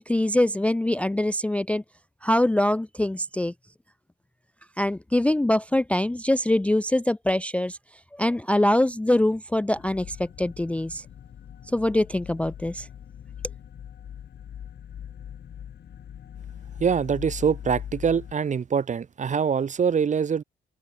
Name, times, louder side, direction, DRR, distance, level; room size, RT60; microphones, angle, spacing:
voice 1, 0.0-1.8 2.2-3.5 4.8-7.8 8.1-11.0 11.7-12.9, left 1 dB, 5° left, 0.4 m, -23 dB
sound 1, 9.7-18.3, left 9 dB, 60° left, 1.4 m, -41 dB
voice 2, 16.8-20.4, right 6 dB, 40° right, 0.7 m, -24 dB
supercardioid pair, 65°, 19 cm